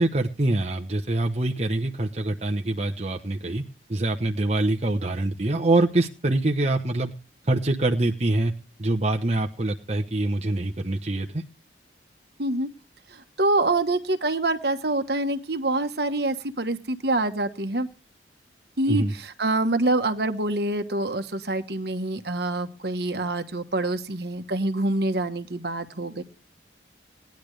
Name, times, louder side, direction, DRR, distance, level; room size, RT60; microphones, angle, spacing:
voice 1, 0.0-3.6 3.9-7.1 7.4-8.5 8.8-11.4 18.9-19.1, right 2 dB, 35° right, 3 dB, 0.9 m, -24 dB
voice 2, 13.1-17.9 18.8-26.2, right 2 dB, 55° right, 8 dB, 1.3 m, -26 dB
19.0 x 10.5 x 3.2 m, 0.30 s
head